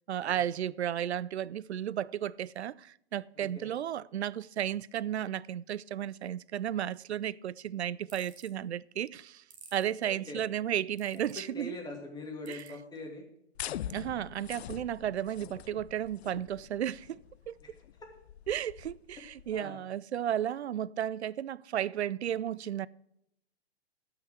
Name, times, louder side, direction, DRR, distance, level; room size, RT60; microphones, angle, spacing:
voice 1, 0.1-9.4 9.7-11.7 12.5-12.6 13.9-17.2 17.5-17.6 18.5-22.9, right 10 dB, 85° right, 0.5 m, -33 dB
voice 2, 3.4-3.7 10.0-10.4 11.3-13.2 17.6-17.8 19.5-19.8, left 2 dB, 10° left, 2.8 m, -43 dB
sound 1, 8.1-8.5 9.5-9.9 11.0-11.4 12.5-12.7, right 6 dB, 25° right, 1.9 m, -52 dB
sound 2, 13.5-19.6, left 11 dB, 75° left, 0.5 m, -44 dB
13.0 x 5.9 x 6.1 m
hypercardioid pair, 115°, 32 cm